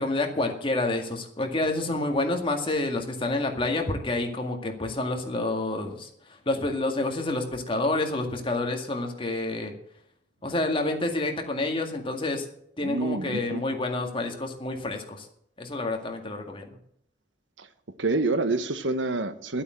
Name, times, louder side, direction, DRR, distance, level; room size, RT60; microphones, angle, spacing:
voice 1, 0.0-6.1 6.5-9.7 10.4-12.5 12.8-15.3 15.6-16.8, left 2 dB, 30° left, 3 dB, 2.0 m, -28 dB
voice 2, 12.8-13.6 17.6-17.7 18.0-19.6, right 3 dB, 85° right, 11 dB, 1.2 m, -27 dB
12.0 x 8.6 x 7.8 m, 0.70 s
head